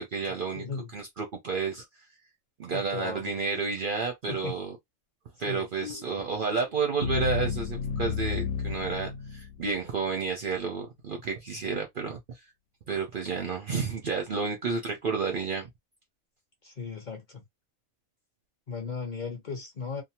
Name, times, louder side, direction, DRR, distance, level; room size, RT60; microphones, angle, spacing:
voice 1, 0.0-0.6 0.9-1.8 2.6-4.7 5.4-12.4 12.9-15.7, right 5 dB, 55° right, 0.6 m, -31 dB
voice 2, 0.5-0.9 2.7-3.3 4.3-4.5 5.5-5.7 16.6-17.4 18.7-20.0, left 5 dB, 45° left, 0.7 m, -36 dB
sound 1, 5.8-9.9, left 6 dB, 75° left, 0.9 m, -33 dB
2.7 x 2.0 x 2.8 m
omnidirectional pair, 1.4 m